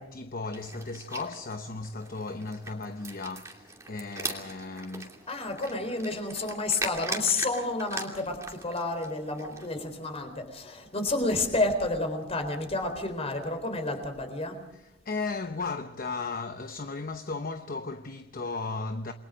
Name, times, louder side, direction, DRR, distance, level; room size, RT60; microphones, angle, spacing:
voice 1, 0.1-5.4 14.7-19.1, left 3 dB, 50° left, 0.9 m, -36 dB
sound 1, 0.5-9.7, right 3 dB, 15° right, 2.8 m, -41 dB
voice 2, 5.3-14.6, left 2 dB, 35° left, 4.0 m, -30 dB
29.0 x 22.0 x 5.1 m
head